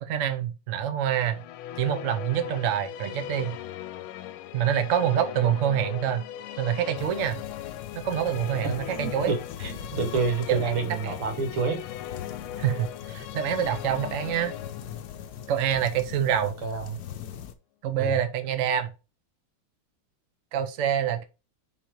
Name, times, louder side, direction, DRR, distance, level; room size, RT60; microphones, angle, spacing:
voice 1, 0.0-1.4 1.8-3.6 4.5-6.2 6.6-7.4 7.9-9.3 10.5-10.6 11.0-11.1 12.6-14.5 15.5-16.5 17.8-18.9 20.5-21.2, right 9 dB, 60° right, 0.8 m, -26 dB
Musical instrument, 1.1-16.6, left 12 dB, 85° left, 1.4 m, -39 dB
sound 1, 7.0-17.5, left 9 dB, 65° left, 1.1 m, -41 dB
voice 2, 8.6-11.8 16.4-17.0 18.0-18.2, right 4 dB, 90° right, 2.2 m, -29 dB
5.0 x 4.2 x 4.5 m
omnidirectional pair, 2.3 m